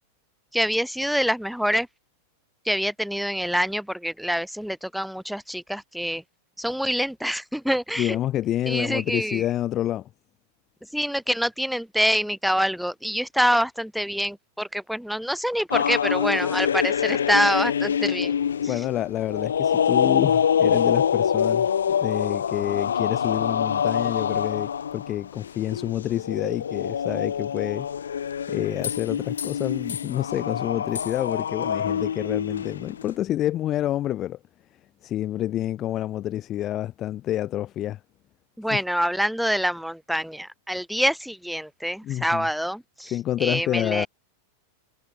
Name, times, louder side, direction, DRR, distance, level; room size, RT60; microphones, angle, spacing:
voice 1, 0.5-1.9 2.7-6.2 6.6-8.2 8.7-9.5 10.9-18.3 18.6-18.8 38.6-43.1 43.4-44.1, equal, ahead, 2.0 m, -26 dB
voice 2, 8.0-10.1 18.7-21.7 22.0-27.9 28.5-34.4 35.0-38.0 38.7-38.8 42.0-42.5 43.1-44.1, left 13 dB, 30° left, 1.9 m, -28 dB
sound 1, 15.7-33.1, left 8 dB, 65° left, 0.5 m, -25 dB
figure-of-eight pair, 90°, 0 cm